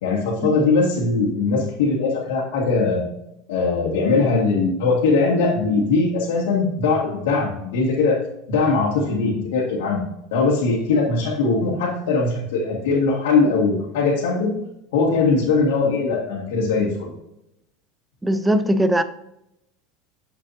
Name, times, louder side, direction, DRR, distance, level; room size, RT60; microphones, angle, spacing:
voice 1, 0.0-3.0 3.5-8.2 8.5-10.0 10.3-14.6 14.9-17.1, left 4 dB, 85° left, 2.0 m, -20 dB
voice 2, 18.2-19.0, right 1 dB, 5° right, 0.6 m, -19 dB
7.5 x 7.4 x 2.7 m
supercardioid pair, 125°, 0 cm